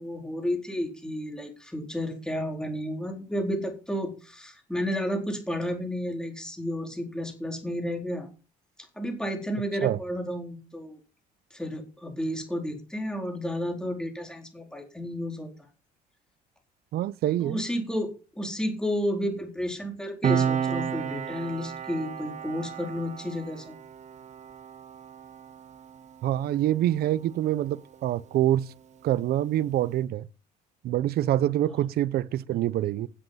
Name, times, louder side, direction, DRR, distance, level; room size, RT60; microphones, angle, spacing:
voice 1, 0.0-8.3 9.0-11.0 11.5-15.5 17.4-23.7, equal, 5° left, 4.2 m, -32 dB
voice 2, 16.9-17.6 26.2-28.7 29.0-30.3 30.8-33.1, right 13 dB, 65° right, 0.7 m, -26 dB
Piano, 20.2-27.3 27.5-27.8, right 8 dB, 45° right, 1.3 m, -32 dB
11.0 x 7.8 x 5.8 m
cardioid pair, 110°, 17 cm